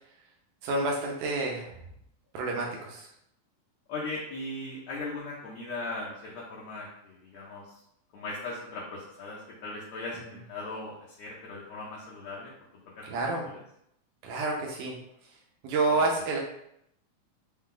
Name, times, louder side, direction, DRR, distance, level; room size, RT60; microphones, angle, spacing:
voice 1, 0.6-1.7 2.3-3.1 13.1-13.5 14.2-15.0 15.6-16.4, right 3 dB, 80° right, -1 dB, 2.1 m, -28 dB
voice 2, 3.9-7.8 8.1-12.5 13.0-13.6 15.9-16.0, left 2 dB, 70° left, -6 dB, 1.8 m, -39 dB
5.5 x 2.3 x 3.7 m, 0.76 s
omnidirectional pair, 3.7 m